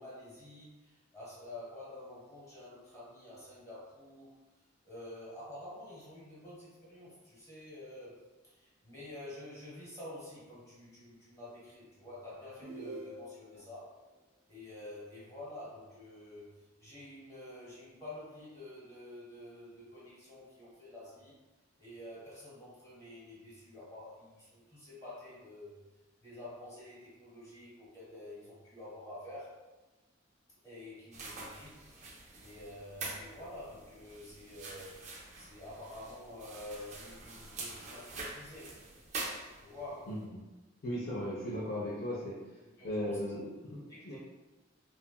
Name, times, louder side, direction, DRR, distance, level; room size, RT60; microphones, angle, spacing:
voice 1, 0.0-4.3 4.8-14.0 14.5-16.5 16.8-21.3 21.8-25.7 26.2-29.6 30.6-31.8 32.4-35.0 35.3-38.8 39.1-39.3 39.6-40.2 42.8-43.2 43.9-44.2, left 1 dB, 15° left, -8 dB, 1.0 m, -49 dB
sound 1, 12.6-13.7, right 1 dB, 90° right, 0.6 m, -45 dB
sound 2, 31.1-39.9, right 3 dB, 35° right, 0.4 m, -45 dB
voice 2, 40.1-40.4 40.8-42.4 42.8-44.2, equal, 55° left, -7 dB, 0.5 m, -37 dB
2.7 x 2.4 x 2.2 m, 1.1 s
head